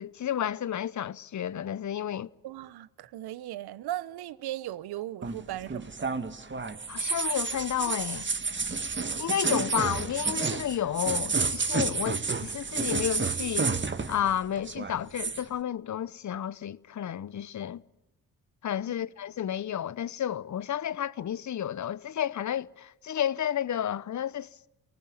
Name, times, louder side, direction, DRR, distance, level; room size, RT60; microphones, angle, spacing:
voice 1, 0.0-2.3 6.9-8.3 9.2-13.7 14.1-17.8 18.6-24.5, left 10 dB, 45° left, 0.9 m, -31 dB
voice 2, 2.4-6.2 18.9-19.0, right 14 dB, 65° right, 1.1 m, -38 dB
sound 1, 5.2-14.3 14.6-15.4, right 4 dB, 25° right, 1.7 m, -30 dB
29.0 x 19.5 x 8.9 m
hypercardioid pair, 45°, 41 cm